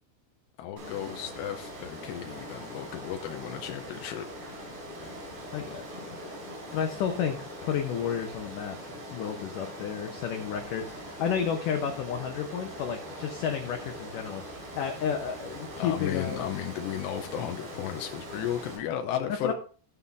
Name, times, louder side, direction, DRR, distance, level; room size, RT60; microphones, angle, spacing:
voice 1, 0.6-4.3 15.8-19.5, left 10 dB, 90° left, 5 dB, 2.9 m, -34 dB
Water, 0.8-18.8, equal, 70° right, 6.7 m, -42 dB
voice 2, 5.5-6.0 6.7-8.8 9.1-16.6 19.4-19.5, left 8 dB, 75° left, 3 dB, 2.0 m, -32 dB
16.5 x 5.6 x 3.5 m, 0.41 s
omnidirectional pair, 4.9 m